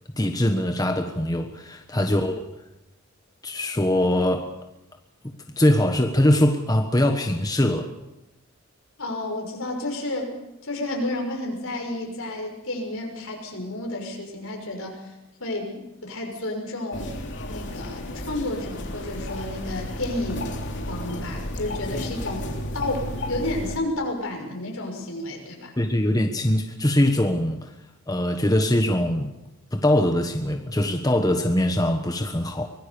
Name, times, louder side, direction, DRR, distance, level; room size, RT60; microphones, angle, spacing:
voice 1, 0.1-2.4 3.4-4.5 5.2-7.9 25.8-27.7 28.1-29.3 29.7-32.7, left 1 dB, 15° left, 5 dB, 1.3 m, -22 dB
voice 2, 9.0-10.3 10.6-15.1 15.4-17.1 17.5-20.6 20.9-22.5 22.7-25.7, left 1 dB, 75° left, 1 dB, 6.2 m, -31 dB
sound 1, 16.9-23.8, left 1 dB, 55° left, 3.4 m, -33 dB
24.5 x 19.0 x 7.1 m, 0.91 s
head